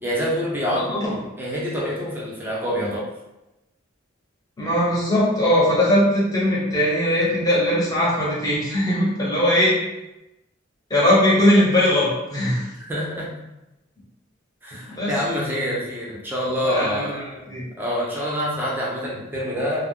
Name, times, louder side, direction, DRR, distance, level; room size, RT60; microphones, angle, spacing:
voice 1, 0.0-3.1 12.8-13.3 14.6-17.1 17.8-19.8, equal, 10° right, -5 dB, 0.6 m, -26 dB
voice 2, 0.7-1.1 4.6-9.7 10.9-12.7 14.9-15.1 16.6-17.7, left 1 dB, 20° left, -6 dB, 0.8 m, -20 dB
2.3 x 2.0 x 3.5 m, 0.96 s
head